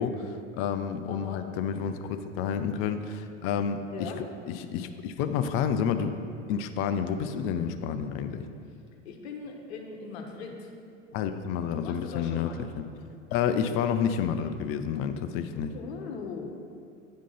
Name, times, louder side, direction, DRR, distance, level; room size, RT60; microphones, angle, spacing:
voice 1, 0.0-6.2 6.5-8.4 11.1-12.8 13.3-15.7, left 7 dB, 35° left, 8 dB, 0.5 m, -30 dB
voice 2, 1.1-1.5 3.9-4.2 9.0-10.7 11.8-12.6 15.7-16.5, left 5 dB, 60° left, 2 dB, 1.1 m, -39 dB
9.6 x 3.7 x 5.5 m, 2.3 s
figure-of-eight pair, 80°, 38 cm